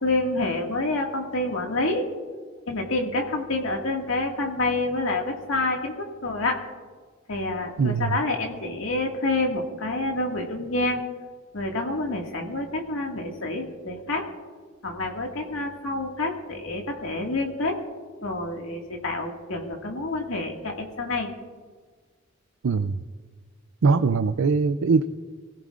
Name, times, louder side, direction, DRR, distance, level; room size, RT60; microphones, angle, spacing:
voice 1, 0.0-2.0 2.7-6.6 7.3-11.0 11.5-14.2 14.8-17.8 18.2-21.3, left 2 dB, 80° left, 1 dB, 2.0 m, -28 dB
voice 2, 7.8-8.2 22.6-23.0 23.8-25.0, right 4 dB, 80° right, 10 dB, 0.5 m, -21 dB
24.0 x 16.0 x 2.5 m, 1.5 s
head